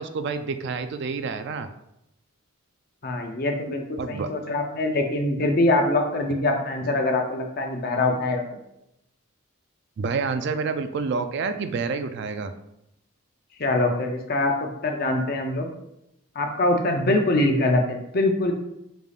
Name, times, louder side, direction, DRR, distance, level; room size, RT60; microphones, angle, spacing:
voice 1, 0.0-1.7 4.0-4.3 10.0-12.5, right 4 dB, 55° right, 9 dB, 0.3 m, -28 dB
voice 2, 3.0-8.4 13.6-15.7 16.4-18.5, left 2 dB, 45° left, 3 dB, 0.6 m, -23 dB
5.1 x 3.3 x 2.4 m, 0.83 s
head